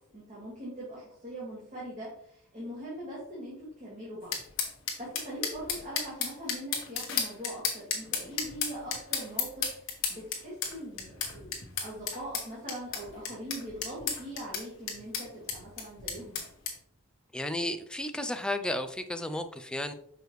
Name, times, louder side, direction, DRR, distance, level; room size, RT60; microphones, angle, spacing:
voice 1, 0.1-4.7 5.0-16.4, right 1 dB, 35° right, -7 dB, 2.0 m, -42 dB
sound 1, 4.3-16.7, left 6 dB, 65° left, 1.4 m, -33 dB
voice 2, 17.3-19.9, left 1 dB, 5° left, 8 dB, 0.3 m, -33 dB
6.3 x 5.0 x 3.1 m, 0.68 s
head